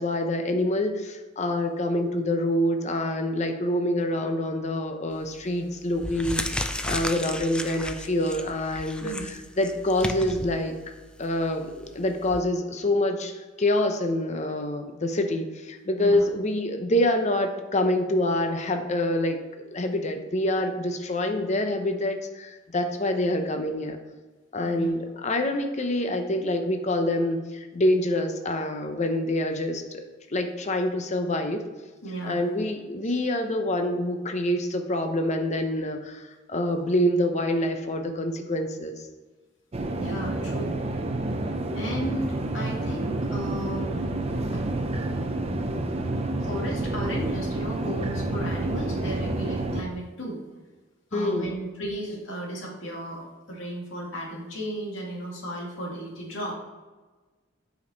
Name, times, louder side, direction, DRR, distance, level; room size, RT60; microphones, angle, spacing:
voice 1, 0.0-10.7 11.2-19.4 19.7-24.0 24.5-30.0 30.3-31.6 32.2-39.1 51.1-51.5, left 1 dB, 40° left, 5 dB, 0.8 m, -26 dB
sound 1, 5.1-5.4 5.9-12.4, left 1 dB, 5° left, 0.3 m, -34 dB
voice 2, 32.0-32.4 33.1-33.2 39.9-40.9 41.7-44.1 44.5-44.7 46.4-50.4 51.1-56.5, right 1 dB, 90° left, -2 dB, 2.1 m, -34 dB
sound 2, 39.7-49.8, right 2 dB, 30° right, 0.6 m, -29 dB
8.4 x 5.2 x 3.9 m, 1.3 s
head